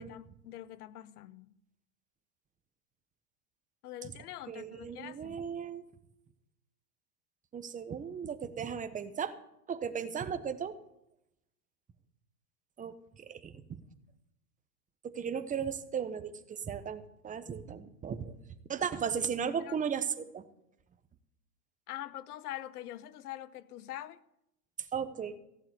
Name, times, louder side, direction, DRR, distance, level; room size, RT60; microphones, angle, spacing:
voice 1, 0.0-1.5 3.8-5.4 19.6-19.8 21.9-24.2, left 13 dB, 65° left, 0.9 m, -44 dB
voice 2, 4.5-5.8 7.5-9.3 9.7-10.7 12.8-12.9 13.3-13.5 15.0-18.3 18.7-20.4 24.9-25.4, right 7 dB, 15° right, 1.1 m, -36 dB
15.0 x 7.6 x 9.3 m
hypercardioid pair, 115°, 48 cm